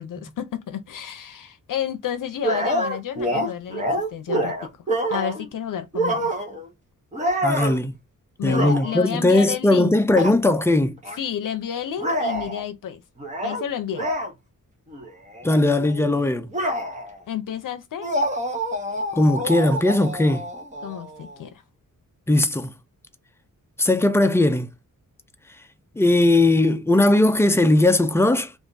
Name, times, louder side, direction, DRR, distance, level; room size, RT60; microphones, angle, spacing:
voice 1, 0.0-4.7 5.1-6.3 8.4-9.9 11.2-13.0 13.4-14.1 17.3-18.1 20.8-21.6, left 9 dB, 70° left, 0.6 m, -31 dB
sound 1, 2.4-5.5 5.9-6.7 7.1-7.8 8.4-9.1 10.1-10.4 11.0-11.2 12.0-12.6 13.2-13.6 14.0-14.3 14.9-15.1 15.3-17.2 18.0-21.4, right 1 dB, 20° right, 0.8 m, -27 dB
voice 2, 7.4-7.9 8.4-11.0 15.4-16.5 19.1-20.4 22.3-22.7 23.8-24.7 26.0-28.5, left 2 dB, 10° left, 0.4 m, -18 dB
3.5 x 2.5 x 3.9 m
wide cardioid pair, 180°, 33 cm